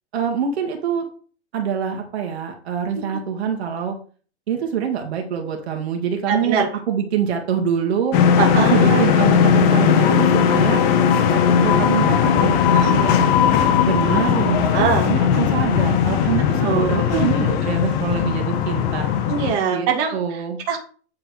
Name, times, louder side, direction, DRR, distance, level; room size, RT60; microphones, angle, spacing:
voice 1, 0.1-1.0 1.5-4.0 4.5-6.6 6.9-8.2 8.5-10.8 11.3-13.3 13.9-19.1 19.7-20.6, right 7 dB, 65° right, 3 dB, 1.7 m, -25 dB
voice 2, 6.3-6.7 8.4-9.1 10.0-10.1 12.7-13.0 14.7-15.1 16.6-17.3 19.3-20.8, right 6 dB, 35° right, 1 dB, 2.0 m, -23 dB
sound 1, 8.1-19.5, left 8 dB, 25° left, 0.7 m, -18 dB
9.0 x 3.7 x 4.7 m, 0.41 s
hypercardioid pair, 145°, 34 cm